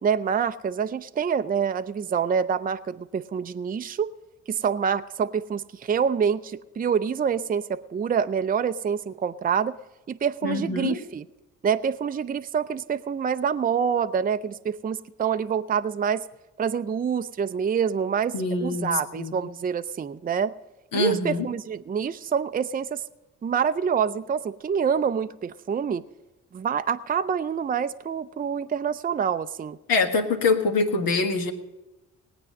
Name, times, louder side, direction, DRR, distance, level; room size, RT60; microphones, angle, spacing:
voice 1, 0.0-4.1 4.5-9.8 10.1-11.2 11.6-16.3 16.6-20.5 20.9-23.0 23.4-26.0 26.5-29.8, right 7 dB, 25° right, 10 dB, 0.5 m, -26 dB
voice 2, 10.4-11.0 18.3-19.3 20.9-21.5 29.9-31.5, left 3 dB, 65° left, 4 dB, 1.6 m, -24 dB
19.0 x 8.6 x 5.3 m, 1.1 s
hypercardioid pair, 45°, 38 cm